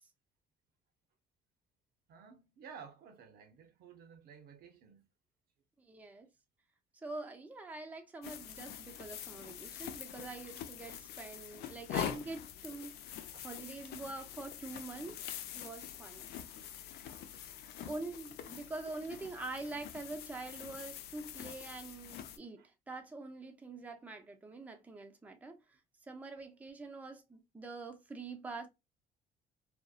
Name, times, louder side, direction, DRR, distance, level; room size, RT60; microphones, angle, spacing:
voice 1, 2.1-5.0 13.3-13.4 22.6-22.7, right 6 dB, 65° right, 0.6 m, -54 dB
voice 2, 5.8-6.3 7.0-13.1 13.4-15.2 15.6-16.3 17.9-25.6 26.1-28.7, right 3 dB, 10° right, 0.5 m, -45 dB
sound 1, 8.2-22.4, left 10 dB, 75° left, 0.4 m, -45 dB
2.6 x 2.1 x 2.3 m
cardioid pair, 110°, 17 cm